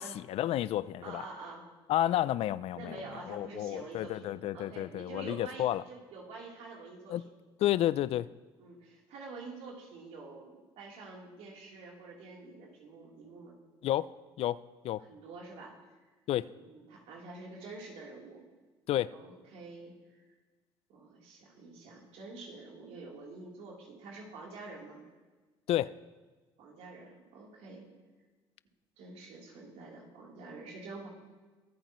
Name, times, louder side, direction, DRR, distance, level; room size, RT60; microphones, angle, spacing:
voice 1, 0.0-1.2 1.9-3.0 3.3-5.8 7.1-7.2 7.6-8.3 13.8-14.1 14.4-14.6 14.8-15.0 16.3-16.5 18.9-19.1 25.7-25.9, left 13 dB, 65° left, 17 dB, 0.4 m, -30 dB
voice 2, 1.0-1.6 2.7-7.2 8.6-13.6 15.0-15.8 16.6-18.4 19.1-19.9 20.9-25.0 26.6-27.9 29.0-31.1, right 3 dB, 75° right, -3 dB, 3.6 m, -47 dB
24.0 x 8.8 x 3.1 m, 1.3 s
supercardioid pair, 75°, 11 cm